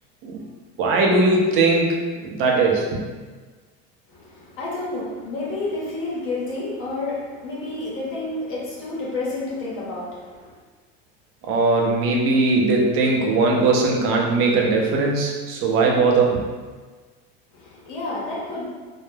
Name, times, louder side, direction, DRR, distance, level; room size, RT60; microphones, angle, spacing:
voice 1, 0.8-3.0 11.4-16.4, right 3 dB, 45° right, -1 dB, 0.6 m, -19 dB
voice 2, 4.1-10.6 17.5-18.7, left 2 dB, 40° left, -7 dB, 0.9 m, -30 dB
2.3 x 2.0 x 3.1 m, 1.4 s
supercardioid pair, 140°, 30 cm